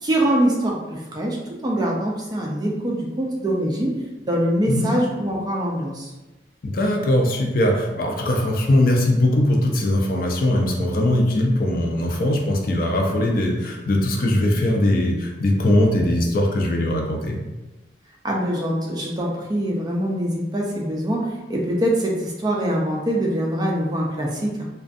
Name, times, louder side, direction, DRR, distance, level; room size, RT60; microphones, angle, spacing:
voice 1, 0.0-4.0 4.2-6.1 18.2-24.7, right 1 dB, 20° right, -2 dB, 0.3 m, -24 dB
voice 2, 6.6-17.4, left 1 dB, 50° left, 1 dB, 0.4 m, -20 dB
2.5 x 2.2 x 2.4 m, 1.1 s
head